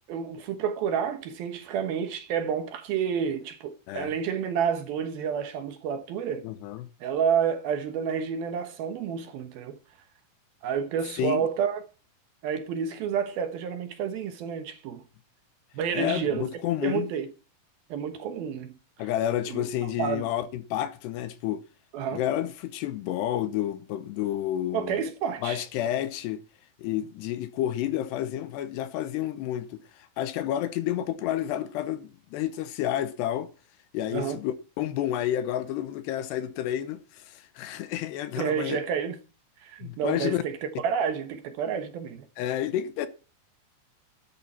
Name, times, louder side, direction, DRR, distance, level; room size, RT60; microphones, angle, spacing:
voice 1, 0.1-6.5 7.0-9.8 10.6-11.8 12.4-15.0 15.7-16.5 16.8-17.3 17.9-18.7 19.5-20.2 21.9-22.2 24.7-25.6 34.1-34.4 38.4-39.2 39.6-42.2, right 7 dB, 70° right, 2.7 m, -29 dB
voice 2, 6.4-6.9 11.2-11.5 15.9-17.1 19.0-21.6 22.1-25.0 25.4-26.4 26.8-33.5 33.9-38.8 39.8-40.4 42.4-43.1, left 12 dB, 75° left, 2.9 m, -30 dB
12.5 x 11.5 x 4.4 m
omnidirectional pair, 5.1 m